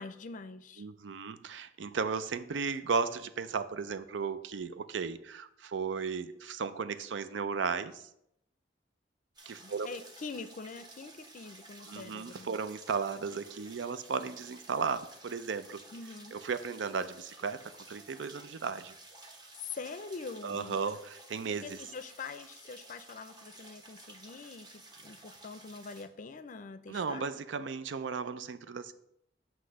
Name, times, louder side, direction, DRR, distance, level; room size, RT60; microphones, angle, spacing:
voice 1, 0.0-0.9 9.6-12.5 15.9-16.4 19.6-20.8 21.5-27.3, left 4 dB, 45° left, 11 dB, 0.5 m, -44 dB
voice 2, 0.8-8.0 9.5-9.9 11.9-15.8 16.3-17.6 17.9-18.9 20.4-21.8 26.9-28.9, right 5 dB, 90° right, 13 dB, 0.5 m, -35 dB
sound 1, 9.4-26.1, right 2 dB, 25° right, 1.0 m, -53 dB
7.8 x 3.1 x 6.2 m, 0.77 s
head